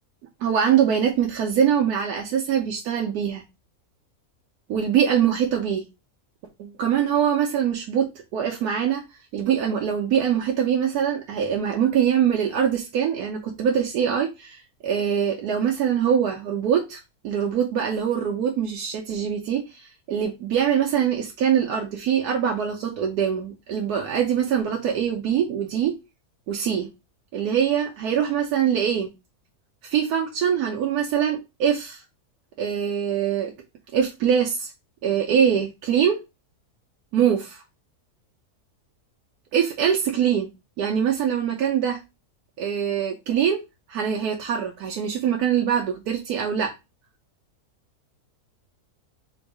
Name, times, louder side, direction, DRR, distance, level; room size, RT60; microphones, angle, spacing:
voice 1, 0.4-3.4 4.7-5.8 6.6-9.0 9.3-25.9 26.5-26.9 27.3-29.1 29.8-32.0 32.6-33.5 33.9-34.7 35.0-36.2 37.1-37.6 39.5-40.5 40.8-42.0 42.6-43.6 43.9-46.7, right 8 dB, 85° right, 1.2 m, -23 dB
3.9 x 2.6 x 4.7 m
omnidirectional pair, 1.6 m